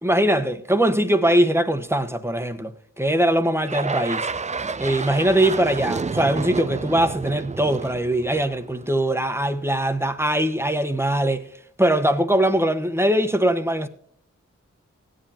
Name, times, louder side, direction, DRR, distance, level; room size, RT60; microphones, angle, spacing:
voice 1, 0.0-2.7 3.0-4.3 4.8-11.4 11.8-13.9, right 1 dB, 10° right, 1.1 m, -21 dB
sound 1, 3.6-9.0, right 4 dB, 25° right, 0.4 m, -30 dB
16.5 x 10.0 x 2.9 m
cardioid pair, 55°, 29 cm